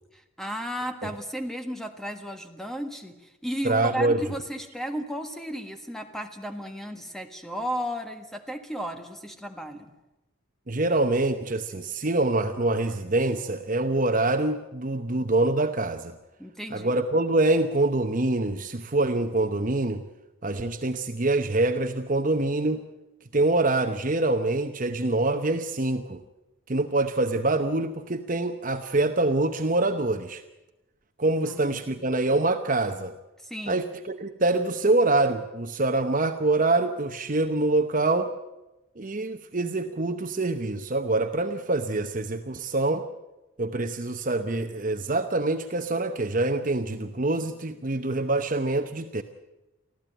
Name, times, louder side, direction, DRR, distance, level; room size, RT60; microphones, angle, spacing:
voice 1, 0.1-9.9 16.4-16.9 31.4-32.1 33.4-33.8, equal, ahead, 6 dB, 1.6 m, -34 dB
voice 2, 3.6-4.2 10.7-16.1 16.7-20.0 20.4-22.8 23.3-26.2 26.7-30.4 31.2-33.1 33.7-38.3 39.0-43.1 43.6-49.2, right 2 dB, 40° right, 6 dB, 0.9 m, -25 dB
24.5 x 15.0 x 9.1 m, 1.0 s
head